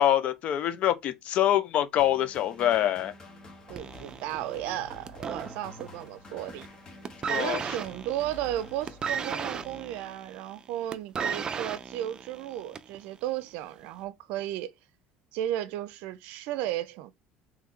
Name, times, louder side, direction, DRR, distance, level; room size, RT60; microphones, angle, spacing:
voice 1, 0.0-3.1 7.3-7.6, left 11 dB, 55° left, 0.6 m, -25 dB
sound 1, 2.0-10.3, left 1 dB, 30° left, 1.3 m, -48 dB
voice 2, 3.7-6.7 7.3-14.7 15.3-17.1, right 13 dB, 75° right, 0.5 m, -34 dB
sound 2, 3.8-6.1 6.4-6.7 7.0-13.0 13.8-13.9, right 6 dB, 30° right, 0.5 m, -35 dB
3.4 x 3.1 x 3.7 m
cardioid pair, 115°, 3 cm